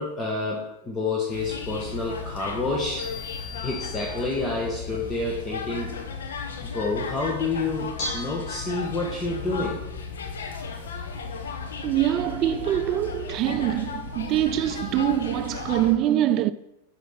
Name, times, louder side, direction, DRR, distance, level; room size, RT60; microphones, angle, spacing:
voice 1, 0.0-3.1 3.6-6.0 6.6-9.8, left 3 dB, 25° left, 1.5 m, -29 dB
sound 1, 1.3-15.9, left 5 dB, 85° left, 1.1 m, -35 dB
sound 2, 3.0-4.8, left 7 dB, 70° left, 1.5 m, -41 dB
Bell / Dishes pots and pans, 7.6-14.2, left 1 dB, 50° left, 2.6 m, -41 dB
voice 2, 11.8-16.5, right 12 dB, 45° right, 0.4 m, -24 dB
6.0 x 5.9 x 5.8 m
hypercardioid pair, 110°, 0 cm